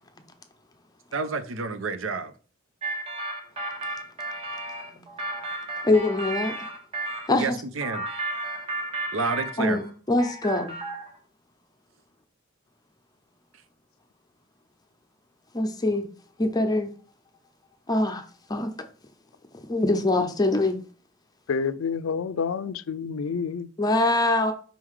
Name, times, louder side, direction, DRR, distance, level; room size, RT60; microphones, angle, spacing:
voice 1, 1.1-2.3 7.4-8.0 9.1-9.8, right 4 dB, 70° right, 0.7 m, -29 dB
sound 1, 2.8-7.3 7.8-9.9 10.2-11.1, right 2 dB, 30° right, 1.3 m, -33 dB
voice 2, 5.8-6.6 7.3-7.6 9.6-10.8 15.5-16.1 16.4-16.9 17.9-18.2 18.5-18.7 19.5-20.8 23.8-24.5, left 2 dB, 20° left, 0.6 m, -23 dB
voice 3, 21.5-23.7, left 5 dB, 85° left, 0.4 m, -28 dB
5.4 x 3.8 x 4.7 m
head